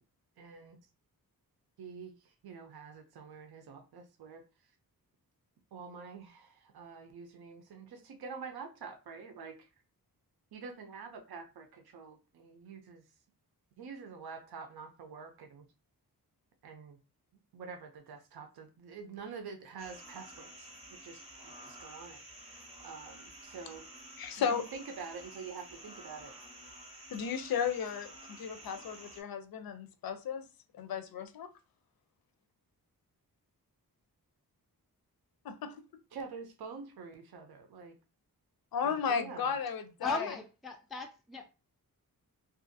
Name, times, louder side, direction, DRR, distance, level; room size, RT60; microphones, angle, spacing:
voice 1, 0.4-0.8 1.8-2.1 2.4-4.4 5.7-9.7 10.5-13.0 13.8-15.6 16.6-17.0 17.5-20.7 21.0-23.8 24.4-26.3 36.1-38.0 38.8-39.5, right 5 dB, 85° right, 0.6 m, -47 dB
sound 1, 19.8-29.2, right 1 dB, 15° right, 0.7 m, -51 dB
voice 2, 24.2-24.6 27.1-30.5 30.7-31.5 35.4-35.8 38.7-40.4, left 7 dB, 70° left, 0.5 m, -34 dB
voice 3, 40.0-41.5, left 3 dB, ahead, 0.3 m, -38 dB
2.6 x 2.4 x 2.5 m
wide cardioid pair, 125°, 37 cm